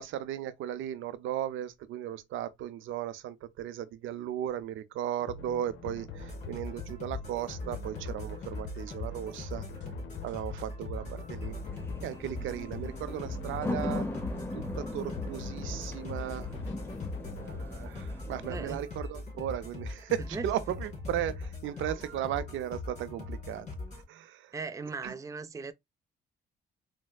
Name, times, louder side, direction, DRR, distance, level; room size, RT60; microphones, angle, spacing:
voice 1, 0.0-9.6 10.2-11.5 12.0-14.1 14.5-16.5 17.4-23.7 23.9-24.5 25.0-25.1, right 11 dB, 80° right, 0.5 m, -36 dB
sound 1, 5.2-17.6, left 4 dB, 70° left, 0.7 m, -45 dB
sound 2, 6.2-24.0, left 2 dB, 35° left, 2.3 m, -41 dB
sound 3, 11.4-18.8, left 2 dB, 10° left, 0.8 m, -39 dB
voice 2, 18.5-18.8 20.3-20.5 24.5-25.7, right 4 dB, 15° right, 0.4 m, -38 dB
4.3 x 2.0 x 2.3 m
cardioid pair, 90°, 20 cm